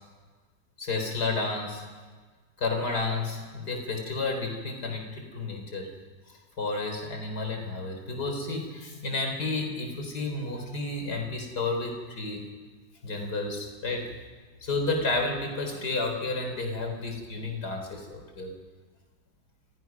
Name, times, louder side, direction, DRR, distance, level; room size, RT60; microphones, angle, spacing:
voice 1, 0.8-1.9 2.6-5.9 6.3-12.5 13.0-14.1 14.6-18.5, left 3 dB, 60° left, 4 dB, 4.6 m, -31 dB
28.5 x 25.0 x 6.1 m, 1.5 s
omnidirectional pair, 1.9 m